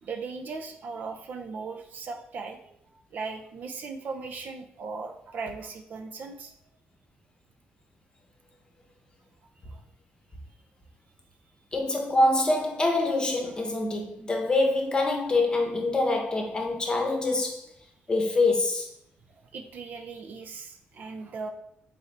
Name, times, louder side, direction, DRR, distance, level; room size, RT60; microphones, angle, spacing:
voice 1, 0.0-2.8 3.1-6.5 9.7-9.8 19.5-21.5, right 4 dB, 55° right, 0.5 m, -38 dB
voice 2, 11.7-17.6 18.1-18.9, left 2 dB, 25° left, 0.9 m, -25 dB
4.1 x 3.2 x 3.9 m
cardioid pair, 130°, 4 cm